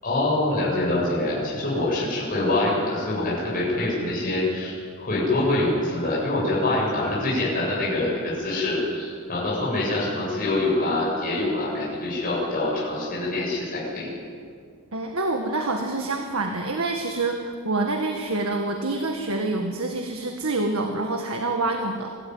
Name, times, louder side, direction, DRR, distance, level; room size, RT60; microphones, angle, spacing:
voice 1, 0.0-14.1, left 2 dB, 40° left, -6 dB, 7.5 m, -25 dB
voice 2, 14.9-22.2, right 2 dB, 70° right, 3 dB, 1.8 m, -27 dB
26.0 x 14.0 x 9.6 m, 2.2 s
head